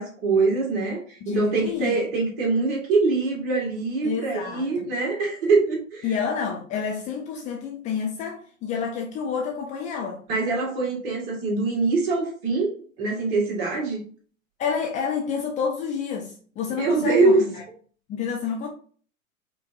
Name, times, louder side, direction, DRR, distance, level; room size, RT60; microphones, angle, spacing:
voice 1, 0.0-6.1 10.3-14.0 16.7-17.5, right 3 dB, 40° right, 1.8 m, -23 dB
voice 2, 1.2-2.0 4.0-4.9 6.0-10.2 14.6-17.6 18.1-18.7, left 6 dB, 20° left, 0.5 m, -29 dB
4.8 x 2.6 x 2.5 m
figure-of-eight pair, 95°, 41 cm